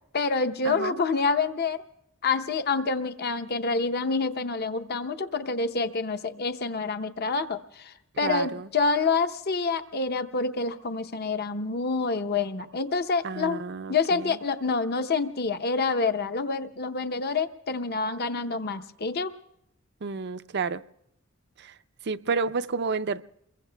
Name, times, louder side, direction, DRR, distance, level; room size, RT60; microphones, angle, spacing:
voice 1, 0.1-1.8 2.2-13.6 13.9-19.3, left 4 dB, 50° left, 0.8 m, -27 dB
voice 2, 0.6-1.0 8.2-8.7 13.2-14.4 20.0-20.8 21.6-21.7 22.0-23.2, right 4 dB, 55° right, 0.5 m, -30 dB
29.0 x 22.5 x 2.2 m
head